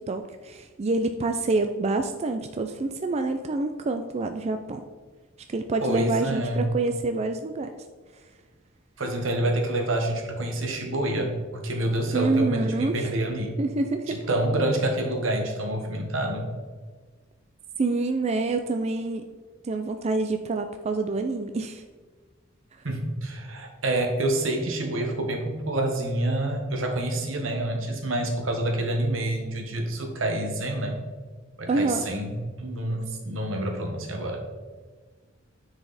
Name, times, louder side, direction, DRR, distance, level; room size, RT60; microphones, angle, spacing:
voice 1, 0.0-4.8 5.5-7.7 12.1-13.1 13.6-14.2 17.8-19.2 19.6-21.8 31.7-32.1, right 3 dB, 35° right, 6 dB, 0.4 m, -27 dB
voice 2, 5.8-6.7 9.0-13.5 14.1-16.5 22.8-31.0 31.6-34.4, right 1 dB, 80° right, 3 dB, 1.4 m, -27 dB
9.7 x 4.8 x 4.1 m, 1.4 s
head